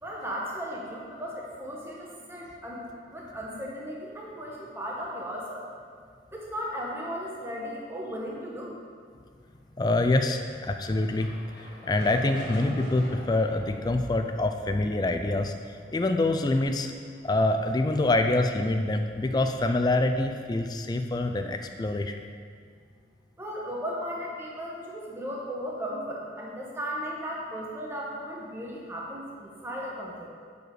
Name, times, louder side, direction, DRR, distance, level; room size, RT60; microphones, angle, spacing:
voice 1, 0.0-2.8 3.1-5.7 6.3-8.8 23.4-30.3, equal, 15° right, -3 dB, 1.1 m, -36 dB
voice 2, 9.8-11.4 11.8-15.5 15.9-16.9 17.2-22.2, left 2 dB, 20° left, 6 dB, 0.3 m, -25 dB
sound 1, 10.3-18.5, equal, 70° left, 1.7 m, -45 dB
7.9 x 4.7 x 4.9 m, 2.1 s
head